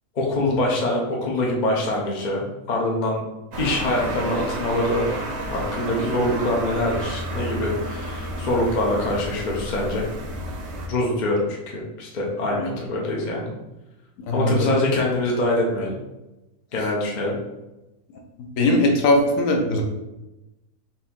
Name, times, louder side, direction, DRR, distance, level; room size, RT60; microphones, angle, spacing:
voice 1, 0.2-3.2 3.6-5.1 5.5-10.1 10.9-13.5 14.3-16.0 16.7-17.4, left 1 dB, 45° left, -2 dB, 0.6 m, -24 dB
sound 1, 3.5-10.9, right 1 dB, 65° right, 1.2 m, -31 dB
voice 2, 14.3-14.7 18.6-19.8, left 1 dB, 65° left, 2 dB, 1.1 m, -20 dB
4.4 x 2.7 x 3.6 m, 1.0 s
omnidirectional pair, 1.6 m